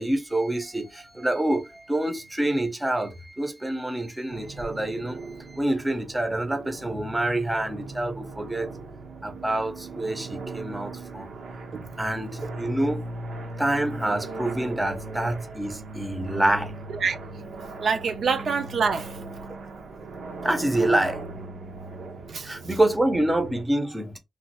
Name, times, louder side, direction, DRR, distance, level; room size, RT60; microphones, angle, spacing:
voice 1, 0.0-8.7 9.2-11.3 12.0-13.0 13.6-16.7 20.4-21.2 22.4-24.2, right 1 dB, 10° right, 0.6 m, -27 dB
sound 1, 4.3-23.6, right 2 dB, 90° right, 0.7 m, -39 dB
voice 2, 17.8-19.2 22.3-22.5, right 5 dB, 60° right, 0.4 m, -26 dB
3.0 x 2.3 x 2.8 m
wide cardioid pair, 135°, 0 cm